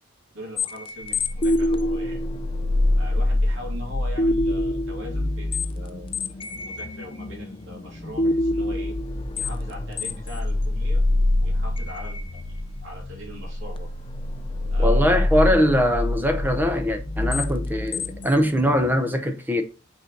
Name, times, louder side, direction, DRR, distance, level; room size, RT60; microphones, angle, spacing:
voice 1, 0.3-2.2 3.0-6.4 6.6-8.9 9.4-11.0 11.4-12.4 12.8-13.9 14.7-15.3, left 1 dB, 70° right, 2.5 m, -41 dB
sound 1, 0.6-18.9, left 1 dB, 25° left, 0.5 m, -25 dB
voice 2, 14.8-19.6, equal, 10° right, 0.8 m, -22 dB
6.0 x 4.3 x 3.9 m
head